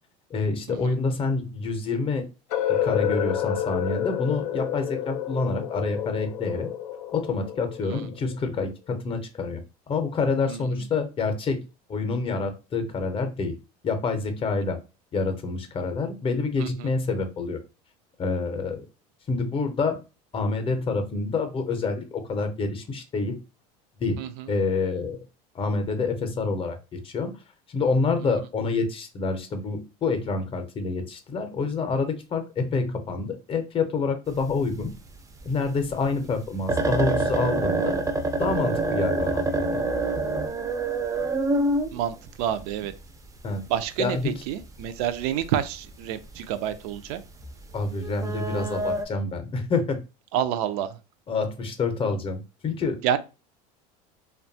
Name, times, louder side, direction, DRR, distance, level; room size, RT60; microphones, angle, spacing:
voice 1, 0.3-2.2 2.7-6.7 7.1-9.6 9.9-11.6 11.9-13.5 13.8-14.8 15.1-17.6 18.2-18.9 19.3-20.0 20.3-23.4 24.0-24.2 24.5-25.2 25.5-27.3 27.7-34.9 35.4-38.0 38.4-39.8 43.4-43.6 44.0-44.4 47.7-50.0 51.3-53.0, left 4 dB, 30° left, 0.6 m, -27 dB
sound 1, 2.5-8.4, left 10 dB, 85° left, 0.4 m, -29 dB
voice 2, 16.6-16.9 24.2-24.3 41.9-42.9 43.7-47.2 50.3-51.0 53.0-53.2, right 10 dB, 75° right, 0.4 m, -28 dB
sound 2, 34.3-35.2 35.4-35.5 35.9-36.0 36.4-36.5 36.7-43.0 44.2-44.3 44.6-44.8 45.1-45.4 45.9-46.0 46.3-46.7 47.3-49.0, right 2 dB, 15° right, 0.4 m, -26 dB
2.7 x 2.2 x 2.6 m
supercardioid pair, 110°, 19 cm